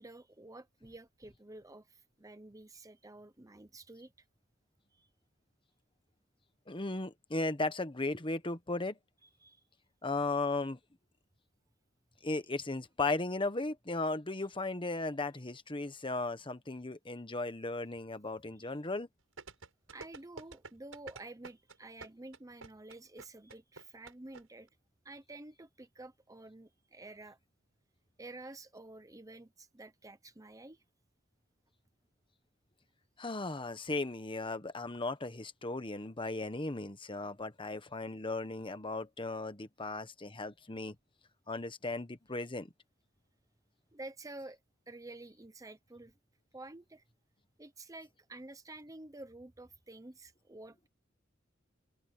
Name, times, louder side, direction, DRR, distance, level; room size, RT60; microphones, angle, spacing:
voice 1, 0.0-4.1 4.9-5.1 9.4-9.6 18.6-18.7 19.9-24.7 25.0-27.4 28.2-30.8 43.9-44.6 44.9-46.1 46.5-47.0 47.6-50.9, right 2 dB, 15° right, 0.9 m, -50 dB
voice 2, 6.7-9.0 10.0-10.8 12.2-19.1 33.2-41.0 41.5-42.7, left 2 dB, 25° left, 1.3 m, -36 dB
sound 1, 19.4-24.4 24.7-24.8, right 3 dB, 80° right, 7.0 m, -48 dB
open air
head